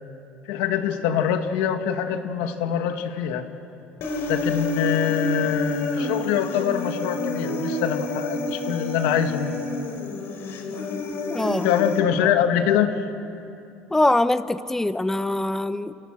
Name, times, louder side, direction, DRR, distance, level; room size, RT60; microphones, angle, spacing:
voice 1, 0.5-3.5 4.3-9.6 11.5-13.0, left 9 dB, 90° left, 7 dB, 2.0 m, -24 dB
Human voice, 4.0-12.0, left 2 dB, 55° left, 4.5 m, -29 dB
voice 2, 11.3-11.7 13.9-15.9, left 2 dB, 10° left, 12 dB, 0.9 m, -23 dB
29.5 x 29.5 x 6.3 m, 2.7 s
cardioid pair, 125°, 5 cm